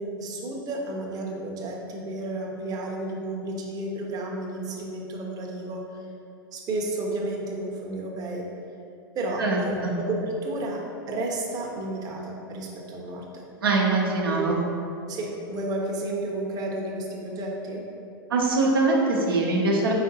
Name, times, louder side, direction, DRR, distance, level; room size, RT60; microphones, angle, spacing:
voice 1, 0.0-6.0 6.5-8.5 9.1-13.4 14.2-14.5 15.1-17.8, right 2 dB, 35° right, -1 dB, 0.7 m, -32 dB
voice 2, 13.6-14.6 18.3-19.9, right 3 dB, 85° right, -2 dB, 0.7 m, -22 dB
4.9 x 3.6 x 2.8 m, 2.6 s
hypercardioid pair, 100°, 12 cm